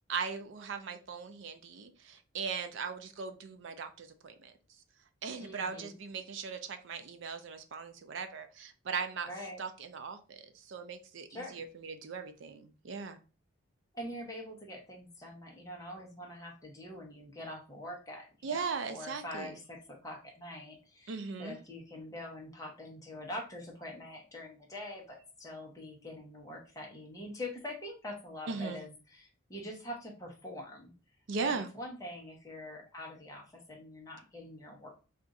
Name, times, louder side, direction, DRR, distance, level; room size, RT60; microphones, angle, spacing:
voice 1, 0.1-4.5 5.2-9.3 9.6-13.2 18.4-19.5 21.1-21.6 28.5-28.8 31.3-31.7, right 5 dB, 60° right, 0.4 m, -38 dB
voice 2, 5.4-6.0 9.3-9.6 11.3-11.6 13.9-21.1 21.4-30.9 31.4-34.9, left 1 dB, 15° left, 0.7 m, -44 dB
2.5 x 2.4 x 3.9 m
head